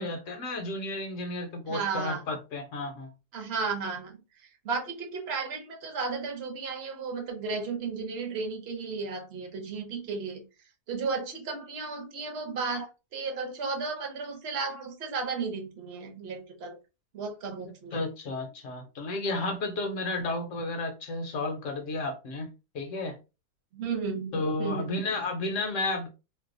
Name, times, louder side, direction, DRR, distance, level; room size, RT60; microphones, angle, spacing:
voice 1, 0.0-3.1 17.9-22.5 22.7-23.2 24.3-26.1, left 2 dB, 65° left, 0.9 m, -32 dB
voice 2, 1.7-2.2 3.3-10.4 10.9-12.9 13.1-16.8 17.1-18.0 23.7-25.0, right 4 dB, 50° right, 1.0 m, -34 dB
2.6 x 2.1 x 3.7 m
omnidirectional pair, 1.6 m